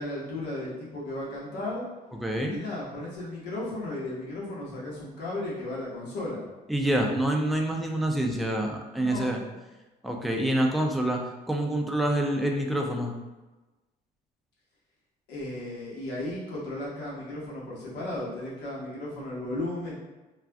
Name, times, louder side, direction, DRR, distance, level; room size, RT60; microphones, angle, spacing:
voice 1, 0.0-1.8 2.5-6.5 9.0-9.4 15.3-19.9, left 1 dB, 85° left, -6 dB, 1.1 m, -35 dB
voice 2, 2.2-2.6 6.7-9.4 10.0-11.2 11.5-13.1, right 1 dB, ahead, 1 dB, 0.4 m, -26 dB
2.4 x 2.4 x 3.3 m, 1.1 s
cardioid pair, 110°, 17 cm